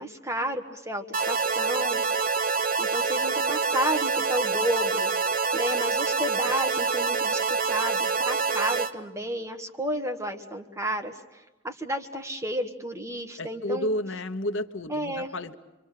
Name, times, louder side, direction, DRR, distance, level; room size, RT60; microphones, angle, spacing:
voice 1, 0.0-2.0 2.8-5.1 5.5-7.4 7.7-13.9 14.9-15.3, equal, 15° right, 4 dB, 1.7 m, -31 dB
sound 1, 1.1-8.9, right 4 dB, 50° right, 1.1 m, -26 dB
voice 2, 13.4-15.5, left 1 dB, 85° left, 9 dB, 1.1 m, -31 dB
26.0 x 25.0 x 6.7 m, 1.1 s
head